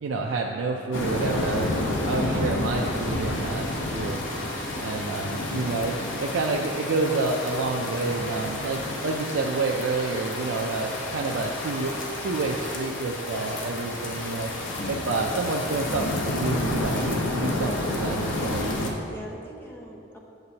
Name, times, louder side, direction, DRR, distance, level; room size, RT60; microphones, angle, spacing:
voice 1, 0.0-1.7 2.1-4.2 4.8-5.9 6.2-11.9 12.2-14.5 14.9-18.9, right 3 dB, 80° right, 0 dB, 0.4 m, -29 dB
sound 1, 0.9-18.9, left 1 dB, 70° left, 0.8 m, -30 dB
voice 2, 4.7-5.4 19.0-20.2, right 1 dB, 10° left, -1 dB, 0.7 m, -43 dB
8.0 x 6.7 x 2.8 m, 2.8 s
head